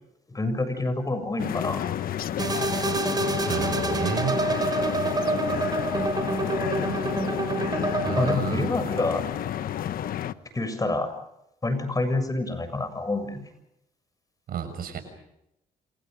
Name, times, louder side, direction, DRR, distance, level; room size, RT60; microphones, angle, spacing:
voice 1, 0.3-1.8 5.3-5.7 7.3-7.4 8.2-9.3 10.5-11.1 11.6-13.5, left 2 dB, 20° left, 10 dB, 7.0 m, -28 dB
sound 1, 1.4-10.3, left 10 dB, 65° left, 1.2 m, -30 dB
sound 2, 2.4-8.4, right 2 dB, 25° right, 5.6 m, -27 dB
voice 2, 3.5-4.4 8.0-8.7 14.5-15.0, right 8 dB, 70° right, 8 dB, 6.5 m, -31 dB
28.5 x 28.5 x 5.3 m, 0.82 s
cardioid pair, 85°, 16 cm